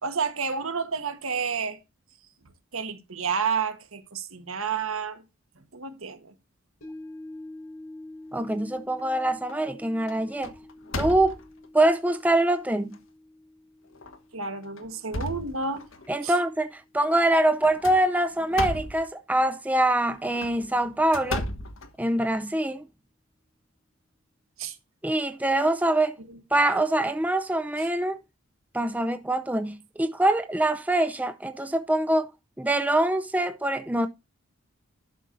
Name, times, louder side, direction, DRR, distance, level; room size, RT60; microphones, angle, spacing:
voice 1, 0.0-1.8 2.7-5.2 5.7-6.3 14.3-15.9 16.2-16.3 24.6-24.7 26.3-26.4, right 5 dB, 75° right, 1.6 m, -30 dB
sound 1, 6.8-17.2 17.5-17.6, left 1 dB, 90° left, 5.2 m, -47 dB
voice 2, 8.3-10.5 11.0-11.4 11.7-13.0 16.1-21.4 22.0-22.8 25.0-26.2 26.5-28.2 28.7-32.3 32.6-34.1, right 1 dB, 5° right, 0.5 m, -24 dB
sound 2, 8.4-9.0 9.5-9.7 10.1-11.7 12.3-12.4 12.9-13.0 13.9-14.2 14.6-16.1 17.6-19.1 20.2-22.4, left 2 dB, 65° left, 1.4 m, -35 dB
11.5 x 6.2 x 4.0 m
head